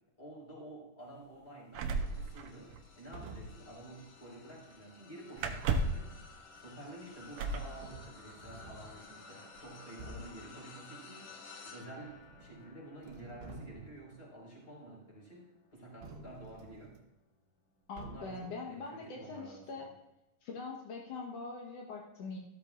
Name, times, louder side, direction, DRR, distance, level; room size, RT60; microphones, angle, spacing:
voice 1, 0.2-15.4 15.7-17.0 18.0-19.9, right 1 dB, 15° left, -4 dB, 4.2 m, -50 dB
sound 1, 1.7-3.1 3.3-3.5 5.4-6.1 7.4-7.7 8.9-9.0 9.4-9.8, right 3 dB, 75° right, 2.0 m, -34 dB
sound 2, 1.8-17.3 17.8-18.0 19.3-19.4, left 4 dB, 60° left, 1.8 m, -55 dB
sound 3, 3.1-3.7 5.4-6.0 7.2-7.3 7.8-9.0 9.5-9.6 10.0-10.5 12.0-12.7 13.0-14.1 16.0-17.0 18.0-18.5, right 2 dB, 90° right, 3.2 m, -50 dB
voice 2, 17.9-19.9 20.4-22.4, left 4 dB, 75° left, 0 dB, 1.4 m, -43 dB
14.5 x 13.0 x 2.5 m, 0.93 s
omnidirectional pair, 4.6 m